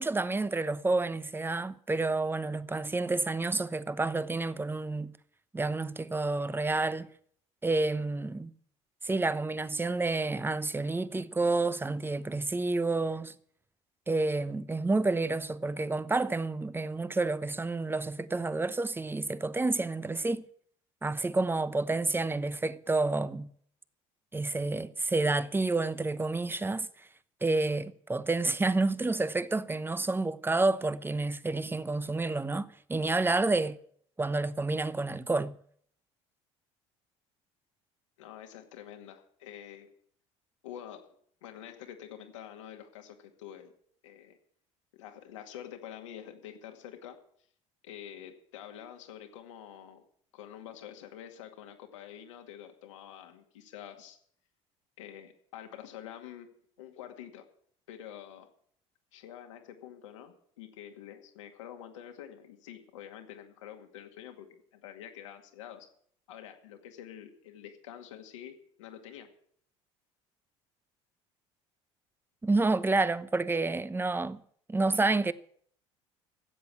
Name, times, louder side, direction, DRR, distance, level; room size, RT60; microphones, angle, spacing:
voice 1, 0.0-5.1 5.5-7.1 7.6-8.5 9.0-13.3 14.1-20.4 21.0-23.5 24.3-26.9 27.4-33.8 34.2-35.5 72.4-74.4 74.7-75.3, right 3 dB, 15° right, 0.9 m, -29 dB
voice 2, 38.2-39.9 40.6-41.1 41.4-43.7 44.0-44.4 44.9-47.2 47.8-50.0 50.3-54.2 55.0-57.4 57.9-58.5 59.1-65.9 66.3-69.3, left 10 dB, 85° left, 2.2 m, -47 dB
15.0 x 8.0 x 8.5 m
hypercardioid pair, 75°, 15 cm